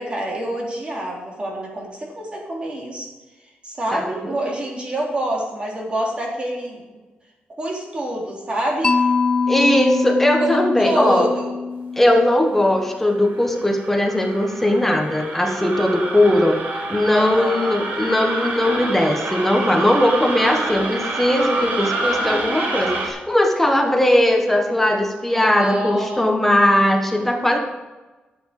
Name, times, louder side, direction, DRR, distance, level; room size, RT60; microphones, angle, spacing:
voice 1, 0.0-3.1 3.6-6.8 7.5-9.1 10.4-11.5 17.1-17.7 25.3-26.3, right 1 dB, 30° right, -2 dB, 3.3 m, -26 dB
voice 2, 3.9-4.3 9.5-11.3 12.0-16.6 16.9-27.6, left 1 dB, 5° left, 2 dB, 1.4 m, -19 dB
Mallet percussion, 8.8-12.9, left 4 dB, 20° left, 0.5 m, -23 dB
sound 1, 13.1-23.1, right 2 dB, 65° right, 2.5 m, -27 dB
12.5 x 7.9 x 5.1 m, 1.2 s
wide cardioid pair, 145°, 4 cm